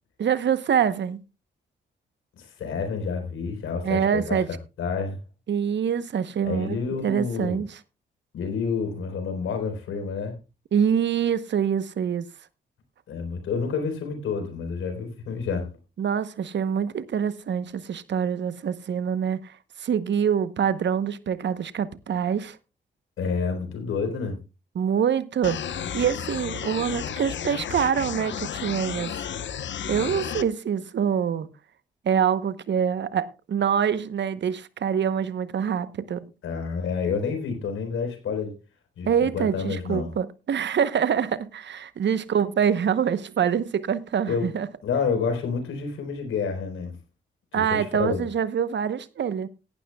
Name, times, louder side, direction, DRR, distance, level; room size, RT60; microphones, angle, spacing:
voice 1, 0.2-1.2 3.8-4.5 5.5-7.8 10.7-12.3 16.0-22.6 24.7-29.3 29.9-31.5 32.0-36.2 39.1-44.7 47.5-49.5, right 8 dB, 60° right, 0.9 m, -25 dB
voice 2, 2.4-5.2 6.4-7.6 8.3-10.3 13.1-15.7 23.2-24.4 36.4-38.5 39.0-40.1 44.3-44.5 44.8-46.9 47.5-48.2, left 5 dB, 85° left, 4.0 m, -29 dB
sound 1, 25.4-30.4, left 8 dB, 65° left, 0.9 m, -32 dB
17.0 x 11.5 x 2.3 m
supercardioid pair, 55°, 20 cm